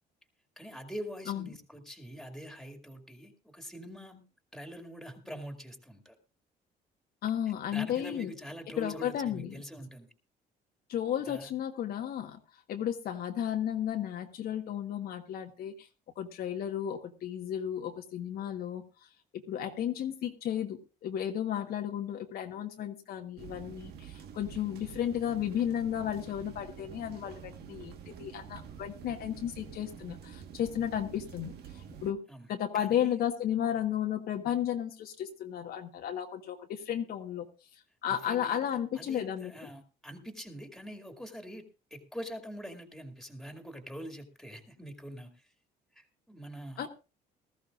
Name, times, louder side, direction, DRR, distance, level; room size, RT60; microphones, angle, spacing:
voice 1, 0.6-4.2 4.5-6.2 7.7-10.1 11.0-11.5 32.3-32.5 32.7-33.1 38.1-38.6 39.0-41.6 41.9-45.5 45.9-46.9, equal, ahead, 5 dB, 2.3 m, -44 dB
voice 2, 7.2-8.3 8.8-9.6 10.9-12.4 12.7-15.9 16.2-18.8 19.3-32.2 32.5-37.5 38.0-39.5 46.8-46.9, left 10 dB, 65° left, 4 dB, 1.3 m, -33 dB
sound 1, 23.4-32.1, right 8 dB, 70° right, 1.5 m, -47 dB
19.0 x 14.0 x 2.5 m, 0.31 s
cardioid pair, 110°, 17 cm